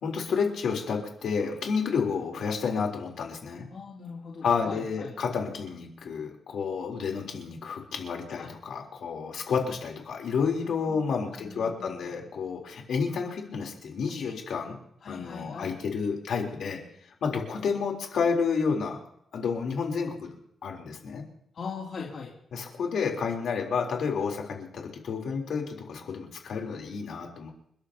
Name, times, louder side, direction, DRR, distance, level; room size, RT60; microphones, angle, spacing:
voice 1, 0.0-3.7 4.4-14.8 15.1-16.8 17.2-19.0 19.3-20.4 20.6-21.3 22.5-27.5, left 5 dB, 70° left, 0 dB, 3.8 m, -30 dB
voice 2, 3.7-5.1 8.3-8.5 10.8-12.1 15.0-15.7 21.5-22.3, left 5 dB, 55° left, -4 dB, 3.0 m, -41 dB
29.5 x 13.0 x 3.0 m, 0.72 s
wide cardioid pair, 170°, 0 cm